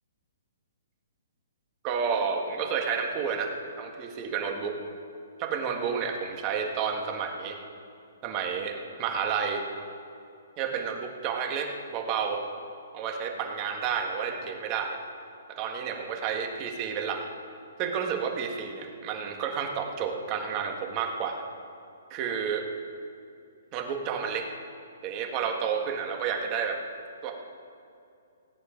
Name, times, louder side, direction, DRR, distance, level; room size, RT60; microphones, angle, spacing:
voice 1, 1.8-4.8 5.4-7.6 8.2-9.6 10.6-12.4 12.9-15.0 15.5-17.2 17.8-21.4 22.1-22.6 23.7-24.5 25.0-26.8 27.2-27.3, right 6 dB, 25° right, 2 dB, 1.6 m, -30 dB
17.5 x 9.4 x 5.2 m, 2.5 s
hypercardioid pair, 165°, 0 cm